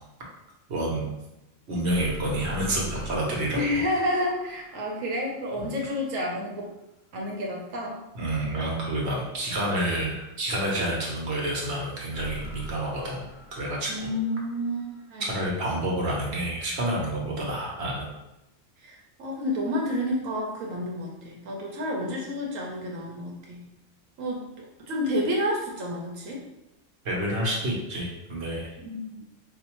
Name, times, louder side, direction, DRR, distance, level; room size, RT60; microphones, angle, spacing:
voice 1, 0.7-1.1 1.7-3.8 5.6-5.7 8.1-13.9 15.2-18.1 27.0-28.7, right 1 dB, 55° right, -3 dB, 1.2 m, -29 dB
sound 1, 1.9-6.0 12.1-15.3, equal, 80° left, 0.4 m, -42 dB
voice 2, 3.5-6.7 7.1-8.0 13.9-15.3 18.8-23.6 24.2-26.4 28.8-29.2, left 1 dB, 75° right, -2 dB, 1.1 m, -30 dB
4.7 x 2.1 x 2.9 m, 0.94 s
omnidirectional pair, 1.4 m